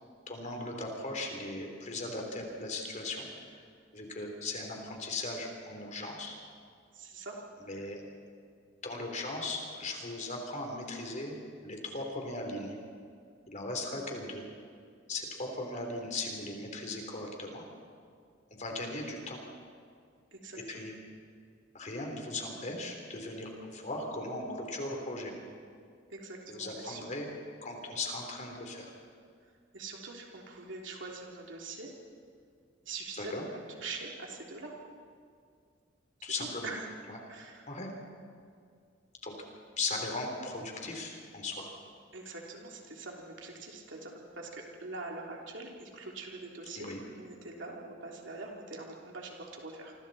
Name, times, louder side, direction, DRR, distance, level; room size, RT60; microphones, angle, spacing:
voice 1, 0.3-3.6 3.9-6.4 7.7-8.0 8.8-12.7 13.5-14.4 15.1-17.6 18.5-19.4 20.7-20.9 21.7-25.3 26.5-27.3 27.6-28.9 33.2-33.4 36.2-36.7 37.1-37.2 37.7-37.9 39.2-39.3 39.8-41.7 46.8-47.0, left 2 dB, 40° left, 2 dB, 3.7 m, -38 dB
voice 2, 6.9-7.4 7.7-7.9 20.3-20.9 26.1-27.0 29.4-31.9 32.8-34.7 36.4-36.9 37.3-37.7 42.1-49.9, right 3 dB, 70° right, -1 dB, 3.3 m, -44 dB
28.0 x 25.0 x 4.3 m, 2.2 s
head